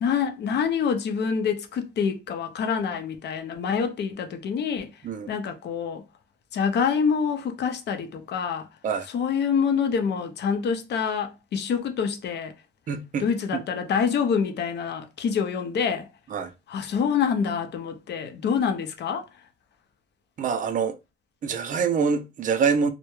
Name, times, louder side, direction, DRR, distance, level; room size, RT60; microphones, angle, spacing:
voice 1, 0.0-4.9 5.3-6.0 6.5-8.7 9.1-12.5 13.2-16.1 16.7-19.2, left 6 dB, 60° left, 0.5 m, -26 dB
voice 2, 12.9-13.3 13.5-13.6 16.3-16.5 20.4-20.9 21.4-22.9, right 6 dB, 40° right, 0.4 m, -25 dB
2.2 x 2.1 x 3.0 m
cardioid pair, 90°, 20 cm